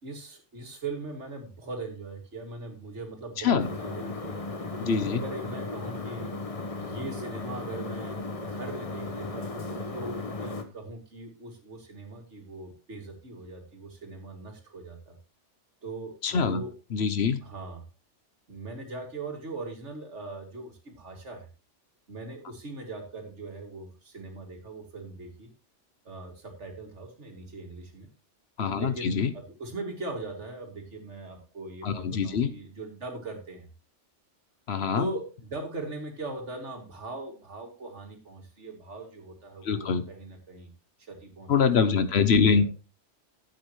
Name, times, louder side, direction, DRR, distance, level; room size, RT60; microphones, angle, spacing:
voice 1, 0.0-4.4 4.8-6.3 6.8-9.5 9.9-15.2 15.8-16.7 17.4-17.8 18.5-21.5 22.1-25.5 26.0-28.1 28.7-33.7 34.9-40.7 41.1-42.0 42.3-42.7, right 2 dB, 75° right, 3 dB, 2.8 m, -40 dB
voice 2, 3.4-3.7 4.8-5.2 16.2-16.6 16.9-17.4 28.6-29.3 31.8-32.5 34.7-35.1 39.6-40.0 41.5-42.7, left 6 dB, 65° left, 12 dB, 1.1 m, -24 dB
sound 1, 3.6-10.6, left 3 dB, 30° left, 1.2 m, -36 dB
13.5 x 8.2 x 3.1 m, 0.30 s
omnidirectional pair, 1.2 m